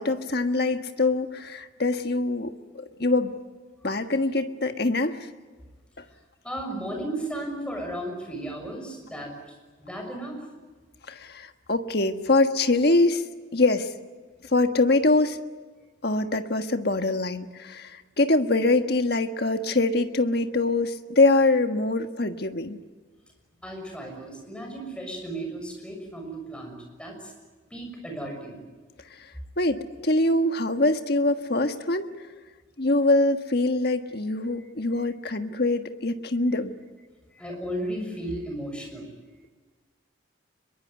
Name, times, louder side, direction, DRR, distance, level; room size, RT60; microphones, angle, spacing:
voice 1, 0.0-3.3 3.8-5.3 6.0-6.1 11.1-13.2 13.5-13.9 14.5-15.4 16.0-22.8 29.1-29.3 29.6-32.1 32.8-36.7, left 2 dB, 55° left, 7 dB, 1.6 m, -24 dB
voice 2, 6.4-10.4 23.6-27.3 27.7-28.6 34.9-35.1 37.3-39.1, right 1 dB, 5° left, 2 dB, 6.5 m, -35 dB
25.0 x 22.5 x 9.4 m, 1.4 s
head